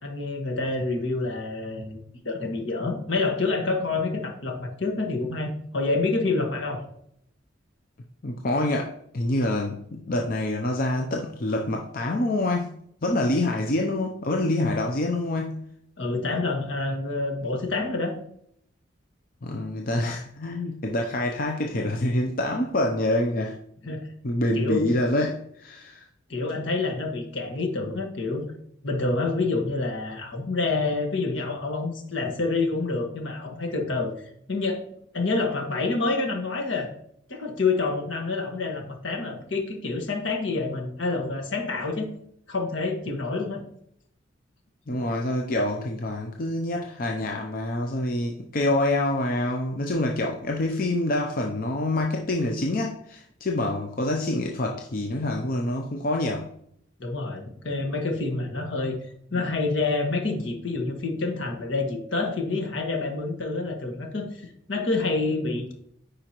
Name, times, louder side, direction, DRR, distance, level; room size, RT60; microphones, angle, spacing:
voice 1, 0.0-2.0 2.2-6.8 16.0-18.1 23.8-24.1 24.5-24.9 26.3-28.4 28.8-34.1 34.5-34.8 35.1-36.9 37.3-42.1 42.5-43.6 57.0-58.9 59.3-65.7, left 3 dB, 75° left, 3 dB, 1.6 m, -27 dB
voice 2, 8.2-12.7 13.0-15.6 19.4-23.6 24.2-26.1 44.9-56.5, left 1 dB, 45° left, 2 dB, 0.6 m, -26 dB
9.6 x 5.0 x 3.0 m, 0.70 s
head